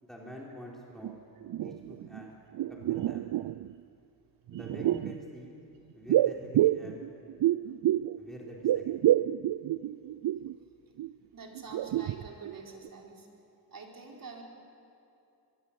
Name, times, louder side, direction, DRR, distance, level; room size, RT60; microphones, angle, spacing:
voice 1, 0.0-1.2 1.6-2.4 2.7-3.2 4.5-5.6 6.0-7.1 8.2-9.0, equal, ahead, -3 dB, 4.0 m, -46 dB
sound 1, 1.0-1.1 1.4-2.2 2.5-3.7 4.5-5.2 6.1-8.2 8.5-10.5 11.0-11.1 11.5-12.6 12.8-12.9, right 13 dB, 70° right, 0.5 m, -28 dB
voice 2, 11.3-13.3 13.7-14.4, right 4 dB, 55° right, 0 dB, 4.3 m, -47 dB
24.5 x 22.0 x 8.5 m, 2.7 s
cardioid pair, 100°, 40 cm